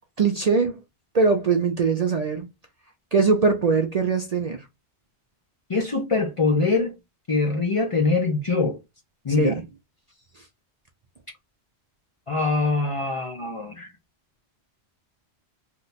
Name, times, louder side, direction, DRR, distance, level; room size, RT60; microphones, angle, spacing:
voice 1, 0.2-0.8 1.1-2.5 3.1-4.6 9.4-9.6, right 4 dB, 50° right, 0.4 m, -21 dB
voice 2, 5.7-6.9 7.3-8.8 9.2-9.6 12.3-13.9, left 3 dB, 40° left, 0.5 m, -23 dB
2.8 x 2.2 x 3.9 m
omnidirectional pair, 1.1 m